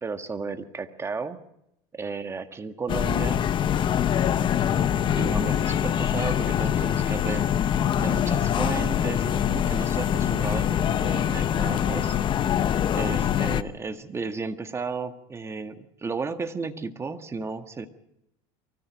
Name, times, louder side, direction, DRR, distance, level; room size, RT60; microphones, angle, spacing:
voice 1, 0.0-1.4 1.9-3.4 5.2-7.5 8.0-12.2 12.9-17.9, right 4 dB, 20° right, 8 dB, 1.7 m, -33 dB
sound 1, 2.9-13.6, left 9 dB, 35° left, 0.9 m, -24 dB
24.0 x 17.5 x 6.3 m, 0.80 s
supercardioid pair, 125°, 14 cm